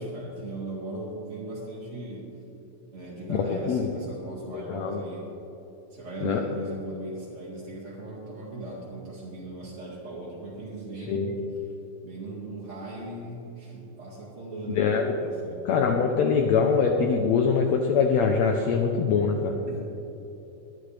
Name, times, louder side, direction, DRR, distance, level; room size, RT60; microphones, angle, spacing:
voice 1, 0.0-2.4 2.9-5.3 5.9-11.3 12.0-15.7 19.7-19.9, right 2 dB, 30° right, -7 dB, 1.5 m, -38 dB
voice 2, 3.3-3.9 4.5-5.0 6.2-6.4 11.1-11.5 14.7-15.1 15.6-19.6, left 5 dB, 85° left, 3 dB, 1.5 m, -23 dB
23.0 x 10.0 x 3.4 m, 3.0 s
omnidirectional pair, 4.2 m